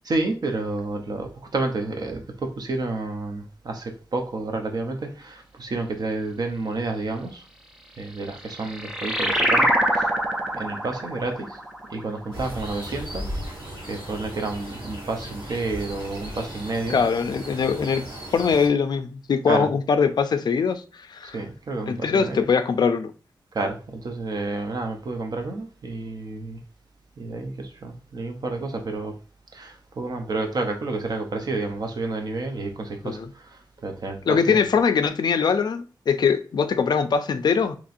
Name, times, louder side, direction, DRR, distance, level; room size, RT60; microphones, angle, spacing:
voice 1, 0.1-7.4 8.0-10.1 10.5-11.6 11.9-13.4 13.9-17.0 19.5-19.7 21.2-22.4 23.5-26.6 27.2-29.2 29.5-34.6, right 3 dB, 55° right, 0.7 m, -30 dB
sound 1, 8.1-13.2, right 1 dB, 10° right, 0.4 m, -25 dB
sound 2, 12.3-18.7, equal, 80° right, 1.8 m, -36 dB
voice 2, 16.9-18.1 18.3-21.4 21.9-23.1 33.0-33.3 34.3-37.8, left 6 dB, 60° left, 0.4 m, -22 dB
4.1 x 3.0 x 2.5 m
wide cardioid pair, 160°, 8 cm